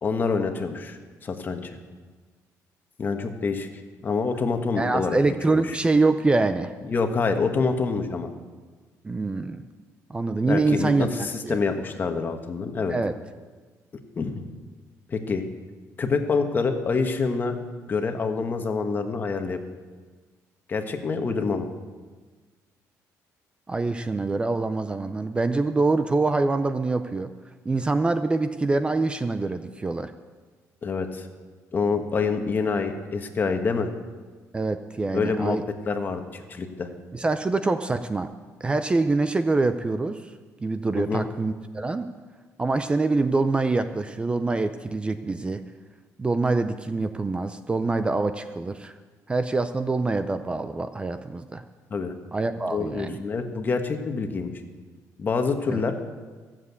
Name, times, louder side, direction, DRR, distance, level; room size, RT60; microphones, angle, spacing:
voice 1, 0.0-1.7 3.0-3.7 4.0-5.2 5.5-5.7 6.9-8.3 10.5-12.9 14.2-14.4 15.1-15.4 16.0-17.6 17.9-19.6 20.7-21.7 30.8-31.3 31.7-33.9 35.1-35.6 35.9-36.9 40.9-41.3 51.9-52.1 52.7-54.5 55.2-55.9, left 4 dB, 35° left, 6 dB, 1.3 m, -26 dB
voice 2, 4.8-6.7 9.0-9.6 10.1-11.6 12.9-13.1 23.7-27.3 27.7-30.1 34.5-35.6 37.1-38.3 38.6-40.3 40.6-42.1 42.6-45.6 46.2-48.9 49.3-51.6 52.3-53.2 55.7-55.8, right 3 dB, 15° right, 10 dB, 0.5 m, -25 dB
14.5 x 7.5 x 8.2 m, 1.4 s
cardioid pair, 125°, 6 cm